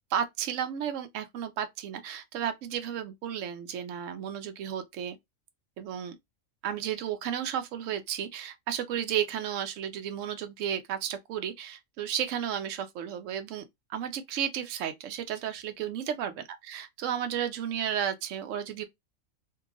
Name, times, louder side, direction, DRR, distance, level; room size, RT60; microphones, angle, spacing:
voice 1, 0.1-5.2 5.8-6.1 6.6-18.9, right 9 dB, 70° right, 1.0 m, -33 dB
2.9 x 2.3 x 3.7 m
omnidirectional pair, 1.4 m